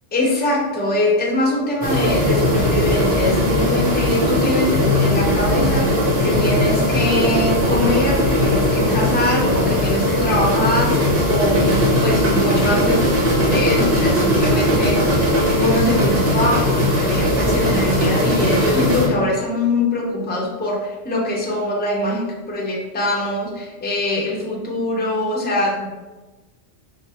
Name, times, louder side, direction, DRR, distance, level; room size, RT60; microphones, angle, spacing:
voice 1, 0.1-25.9, left 1 dB, 10° left, -3 dB, 0.5 m, -23 dB
sound 1, 1.8-19.1, equal, 50° right, 1.3 m, -18 dB
4.7 x 2.1 x 4.3 m, 1.2 s
omnidirectional pair, 1.2 m